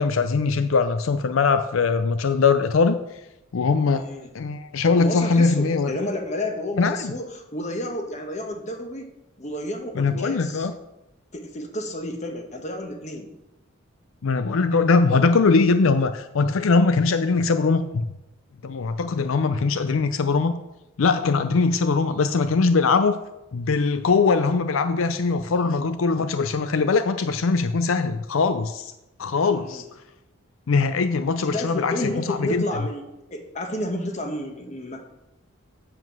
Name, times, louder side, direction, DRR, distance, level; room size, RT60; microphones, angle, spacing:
voice 1, 0.0-3.0 3.5-4.1 4.3-5.9 6.8-7.1 10.0-10.7 14.2-18.1 18.6-20.5 21.0-23.2 23.5-28.9 29.2-29.8 30.7-32.0 32.3-32.6, left 4 dB, 80° left, 11 dB, 0.5 m, -21 dB
voice 2, 3.9-4.3 5.0-9.1 9.4-10.7 11.3-13.3 29.5-29.8 31.4-33.0 33.3-35.0, left 1 dB, 35° left, 4 dB, 1.3 m, -31 dB
7.8 x 7.5 x 6.1 m, 0.92 s
head